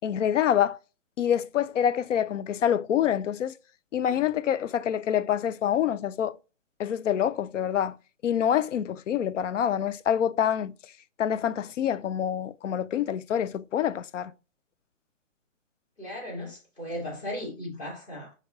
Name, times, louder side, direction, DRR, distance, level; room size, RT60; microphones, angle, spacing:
voice 1, 0.0-0.8 1.2-3.5 3.9-6.4 6.8-7.9 8.2-10.7 11.2-14.3, left 9 dB, 70° left, 0.5 m, -26 dB
voice 2, 16.0-18.3, left 1 dB, 20° left, 2.1 m, -36 dB
4.6 x 2.8 x 3.9 m
hypercardioid pair, 145°, 38 cm